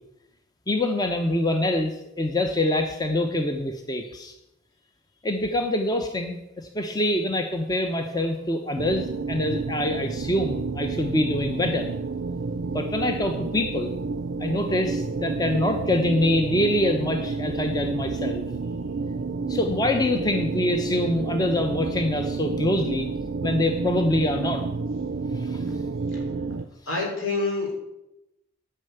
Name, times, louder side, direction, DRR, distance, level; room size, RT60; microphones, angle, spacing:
voice 1, 0.7-4.3 5.2-11.9 12.7-13.9 14.4-18.4 19.5-23.1 23.4-24.6 25.4-25.6, left 1 dB, 20° left, 5 dB, 0.7 m, -25 dB
sound 1, 8.8-26.7, right 4 dB, 55° right, 0.5 m, -30 dB
voice 2, 26.9-27.8, left 3 dB, 75° left, -1 dB, 4.2 m, -28 dB
11.0 x 5.6 x 7.9 m, 0.90 s
head